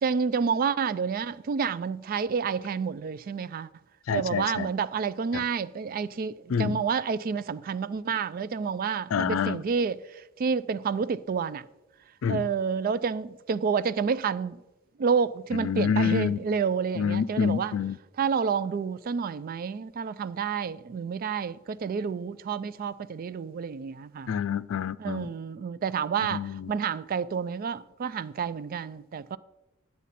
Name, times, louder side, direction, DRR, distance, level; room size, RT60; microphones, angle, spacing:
voice 1, 0.0-3.7 4.1-11.7 12.3-14.6 15.0-17.8 18.2-24.3 25.0-29.4, right 6 dB, 45° right, 0.3 m, -29 dB
voice 2, 4.1-4.7 5.3-5.4 6.5-6.8 9.1-9.6 12.2-12.4 15.5-16.4 17.0-18.0 24.3-25.3 26.3-26.7, left 7 dB, 75° left, 0.4 m, -27 dB
11.5 x 8.2 x 4.2 m
head